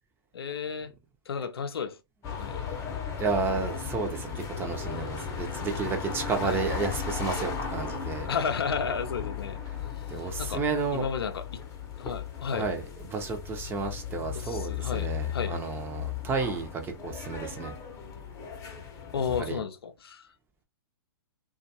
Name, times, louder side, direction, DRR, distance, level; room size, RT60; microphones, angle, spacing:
voice 1, 0.3-0.9 1.3-2.0 2.3-2.6 4.9-5.4 6.4-6.6 8.3-9.6 10.1-10.6 10.9-11.6 12.0-12.7 14.3-15.6 19.1-20.3, left 6 dB, 80° left, 0.5 m, -33 dB
sound 1, 2.2-19.4, left 7 dB, 25° left, 0.7 m, -36 dB
voice 2, 3.2-8.3 10.1-11.0 12.5-12.8 13.1-17.7 19.5-19.6, right 4 dB, 20° right, 0.6 m, -32 dB
2.5 x 2.3 x 2.7 m
hypercardioid pair, 120°, 12 cm